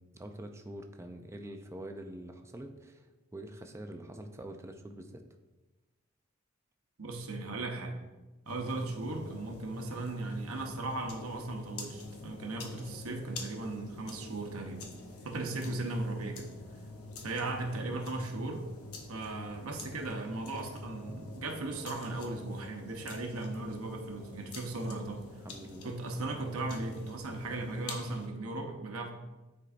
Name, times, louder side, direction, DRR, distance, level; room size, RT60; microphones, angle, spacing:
voice 1, 0.0-3.1 3.3-5.2 15.7-16.0 25.4-25.9, right 1 dB, 15° right, 5 dB, 0.4 m, -45 dB
voice 2, 7.0-8.0 8.4-14.8 15.2-16.5 17.2-18.7 19.1-25.3 25.8-29.1, right 2 dB, 80° right, 2 dB, 0.9 m, -37 dB
sound 1, 8.5-28.3, left 2 dB, 85° left, 0.8 m, -46 dB
9.8 x 4.5 x 2.5 m, 1.1 s
head